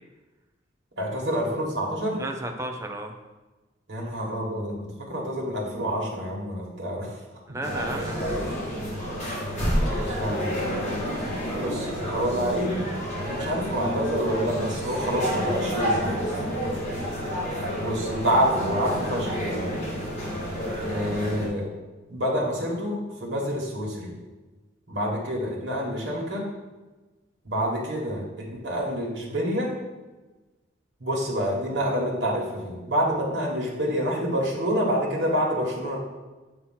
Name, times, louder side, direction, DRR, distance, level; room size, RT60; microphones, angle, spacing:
voice 1, 1.0-2.2 3.9-7.1 9.9-10.5 11.5-12.9 13.2-16.3 17.8-19.7 20.8-21.7 22.1-24.1 24.9-26.5 27.4-29.7 31.0-36.0, equal, 60° right, -4 dB, 1.5 m, -27 dB
voice 2, 2.2-3.1 7.5-8.6 9.6-10.1, right 1 dB, 15° right, 4 dB, 0.5 m, -35 dB
sound 1, 7.6-21.5, equal, 35° left, 2.0 m, -29 dB
8.0 x 2.9 x 5.7 m, 1.2 s
head